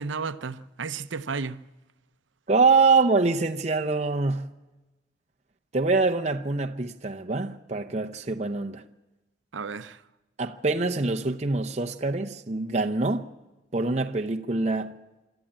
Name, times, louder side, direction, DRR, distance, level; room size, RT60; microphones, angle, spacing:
voice 1, 0.0-1.6 9.5-10.0, right 5 dB, 90° right, 0.7 m, -33 dB
voice 2, 2.5-4.5 5.7-8.8 10.4-13.3 13.7-14.9, right 3 dB, 35° right, 0.7 m, -24 dB
25.0 x 13.0 x 8.8 m
head